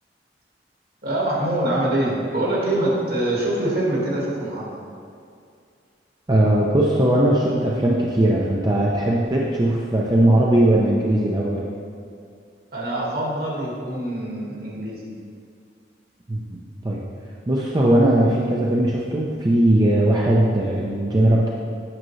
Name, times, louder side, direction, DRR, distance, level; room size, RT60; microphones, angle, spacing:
voice 1, 1.0-4.8 12.7-15.1, right 1 dB, 55° right, -5 dB, 1.8 m, -24 dB
voice 2, 6.3-11.6 16.3-16.6 16.8-17.0 17.5-21.5, right 1 dB, 25° right, -4 dB, 0.5 m, -19 dB
8.7 x 5.9 x 3.1 m, 2.3 s
head